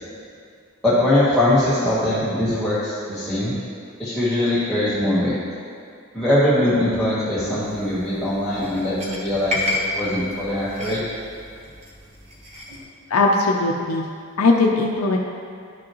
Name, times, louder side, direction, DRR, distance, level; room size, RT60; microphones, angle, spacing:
voice 1, 0.8-3.5 4.0-5.4 6.1-9.6 9.9-11.0, left 1 dB, ahead, -13 dB, 1.3 m, -21 dB
sound 1, 7.6-12.8, left 2 dB, 30° right, 1.2 m, -31 dB
voice 2, 13.1-14.1 14.4-15.2, left 3 dB, 85° left, 1 dB, 0.5 m, -19 dB
11.5 x 6.1 x 3.0 m, 2.3 s
head